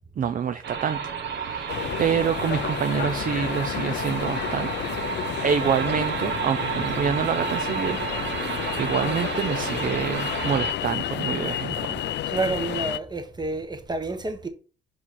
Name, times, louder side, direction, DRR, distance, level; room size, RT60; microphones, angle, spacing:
voice 1, 0.2-4.7 5.1-8.4 8.8-12.1, right 7 dB, 45° right, 0.5 m, -27 dB
sound 1, 0.6-10.7, right 7 dB, 65° right, 1.3 m, -31 dB
sound 2, 1.7-13.0, left 12 dB, 60° left, 0.5 m, -31 dB
voice 2, 12.3-14.5, right 3 dB, 20° right, 1.3 m, -29 dB
5.6 x 4.8 x 4.7 m
cardioid pair, 90°, 20 cm